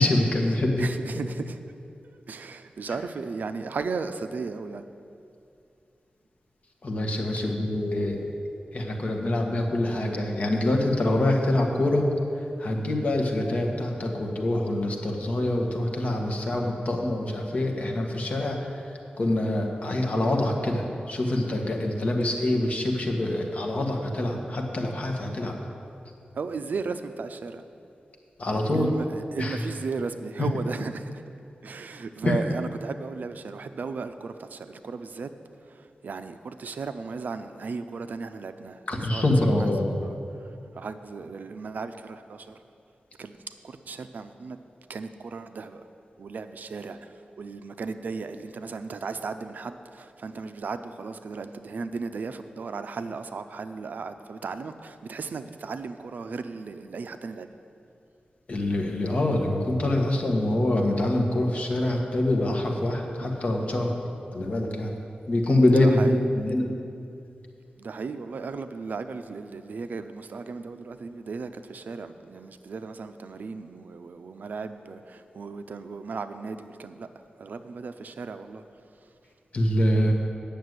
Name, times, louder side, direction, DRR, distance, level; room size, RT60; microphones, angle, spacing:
voice 1, 0.0-0.9 6.8-8.3 8.7-12.0 12.6-18.8 19.2-25.5 28.4-28.9 29.4-29.6 30.4-30.5 32.2-32.3 38.9-39.9 58.5-63.9 64.3-64.9 65.3-66.6 79.5-80.1, left 1 dB, 45° left, 1 dB, 1.3 m, -25 dB
voice 2, 0.8-1.6 2.0-4.9 7.4-7.6 26.3-27.6 28.5-31.2 31.6-35.3 35.6-38.8 39.1-39.3 39.6-42.6 43.2-45.8 46.2-57.5 63.2-63.3 65.8-66.2 67.8-77.1 77.4-78.6, right 4 dB, 65° right, 10 dB, 0.5 m, -36 dB
9.3 x 6.7 x 8.0 m, 2.5 s
wide cardioid pair, 145°, 3 cm